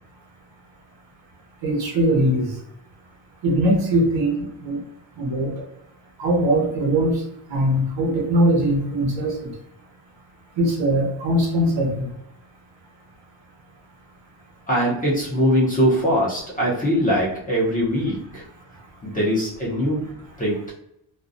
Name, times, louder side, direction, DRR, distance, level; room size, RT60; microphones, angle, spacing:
voice 1, 1.6-2.6 3.4-4.8 5.2-5.6 6.2-7.2 7.5-9.5 10.6-12.1, right 1 dB, 60° right, -1 dB, 0.9 m, -21 dB
voice 2, 14.7-18.4 19.0-20.1 20.4-20.7, equal, 15° left, -6 dB, 0.7 m, -22 dB
2.4 x 2.2 x 2.6 m, 0.77 s
cardioid pair, 150°, 49 cm